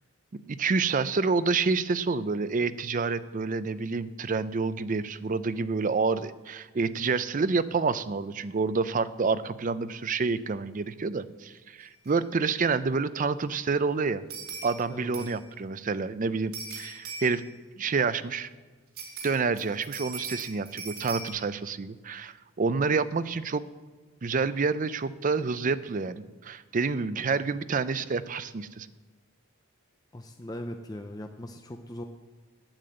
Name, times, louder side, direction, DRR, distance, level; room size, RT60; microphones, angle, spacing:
voice 1, 0.5-14.2 14.6-17.4 17.8-18.5 19.2-23.6 24.2-28.9, right 4 dB, 40° right, 14 dB, 0.4 m, -28 dB
sound 1, 12.0-12.1 12.4-12.5 14.3-14.8 15.1-15.5 16.5-17.5 19.0-21.3, right 4 dB, 80° right, 2.8 m, -40 dB
voice 2, 14.9-15.3 30.1-32.0, left 1 dB, 20° left, 5 dB, 0.5 m, -39 dB
9.5 x 8.8 x 7.7 m, 1.4 s
head